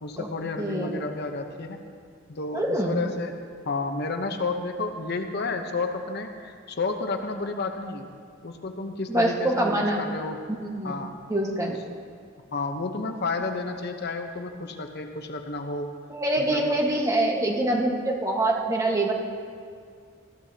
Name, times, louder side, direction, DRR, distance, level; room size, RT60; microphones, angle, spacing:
voice 1, 0.0-1.8 2.3-3.4 3.7-8.1 8.4-10.4 10.8-11.2 11.7-11.8 12.5-15.9 16.4-16.8, left 3 dB, 55° left, 5 dB, 0.9 m, -31 dB
voice 2, 0.6-1.0 2.5-3.0 9.1-10.0 10.5-10.9 11.3-11.8 16.1-19.1, right 1 dB, 15° right, 0 dB, 1.5 m, -25 dB
19.5 x 14.5 x 2.9 m, 2.2 s
head